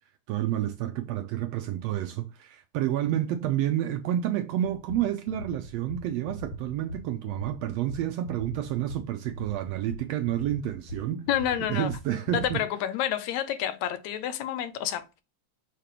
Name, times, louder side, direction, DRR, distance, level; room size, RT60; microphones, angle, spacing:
voice 1, 0.3-11.2 11.7-12.6, right 12 dB, 80° right, 1.6 m, -29 dB
sound 1, 4.6-12.6, right 1 dB, 45° left, 1.2 m, -41 dB
voice 2, 11.3-11.9 12.3-15.2, left 10 dB, 75° left, 1.9 m, -29 dB
6.6 x 2.9 x 5.0 m
omnidirectional pair, 3.4 m